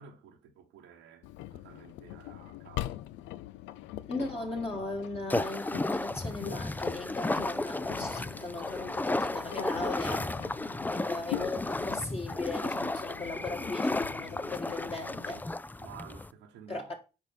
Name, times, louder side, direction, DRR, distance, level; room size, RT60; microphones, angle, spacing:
voice 1, 0.0-3.1 10.9-11.5 15.8-16.9, right 7 dB, 85° right, 1.3 m, -52 dB
Engine, 1.2-15.4, left 14 dB, 75° left, 0.4 m, -43 dB
voice 2, 4.1-10.3 10.9-15.4 16.7-16.9, left 2 dB, 30° left, 2.1 m, -38 dB
sound 1, 5.3-16.3, left 2 dB, 10° left, 0.4 m, -33 dB
5.9 x 4.7 x 5.2 m
hypercardioid pair, 50°, 19 cm